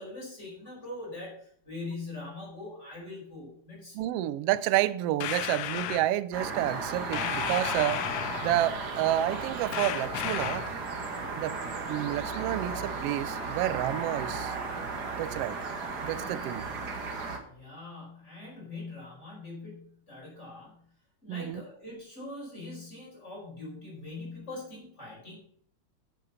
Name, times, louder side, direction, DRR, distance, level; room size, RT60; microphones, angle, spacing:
voice 1, 0.0-4.1 17.4-20.8 21.2-25.4, left 2 dB, 20° left, 5.1 m, -42 dB
voice 2, 3.9-8.0 8.4-10.7 11.4-11.6 11.9-14.6 15.2-15.6 16.0-16.6 21.3-21.6, right 14 dB, 80° right, 1.4 m, -29 dB
sound 1, 5.2-6.1 7.1-8.7 9.7-10.8, left 11 dB, 85° left, 1.2 m, -33 dB
sound 2, 6.3-17.4, right 4 dB, 45° right, 1.7 m, -35 dB
9.4 x 8.3 x 5.6 m
omnidirectional pair, 3.3 m